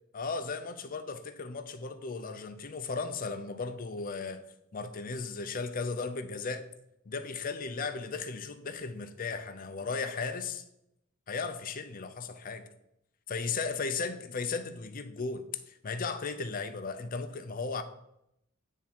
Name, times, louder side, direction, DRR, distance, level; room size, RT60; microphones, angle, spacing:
voice 1, 0.1-4.4 4.7-6.6 7.1-10.6 11.3-12.7 13.3-17.8, left 4 dB, 45° left, 0.6 m, -36 dB
8.9 x 3.6 x 4.3 m
head